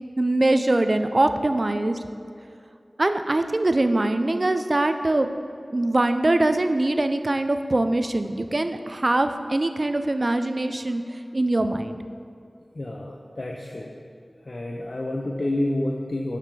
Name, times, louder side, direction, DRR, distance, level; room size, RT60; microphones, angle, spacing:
voice 1, 0.2-2.0 3.0-5.3 5.7-11.0 11.3-12.0, right 2 dB, 50° right, 9 dB, 0.4 m, -22 dB
voice 2, 12.8-13.9 14.5-16.4, left 1 dB, 55° left, 1 dB, 0.6 m, -29 dB
6.8 x 5.8 x 4.7 m, 2.5 s
wide cardioid pair, 45°, 0 cm